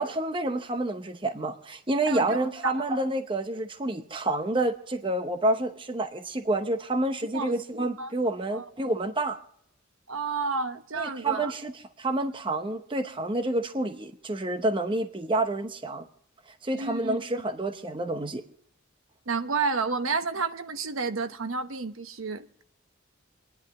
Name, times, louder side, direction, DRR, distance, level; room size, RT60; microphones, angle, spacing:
voice 1, 0.0-9.4 11.0-11.7 12.0-16.0 16.6-18.4, right 2 dB, 25° right, 0.8 m, -28 dB
voice 2, 2.1-2.8 7.3-8.1 8.5-8.7 10.1-11.5 16.7-17.2 19.3-22.6, right 4 dB, 85° right, 1.0 m, -31 dB
29.5 x 10.5 x 3.0 m
head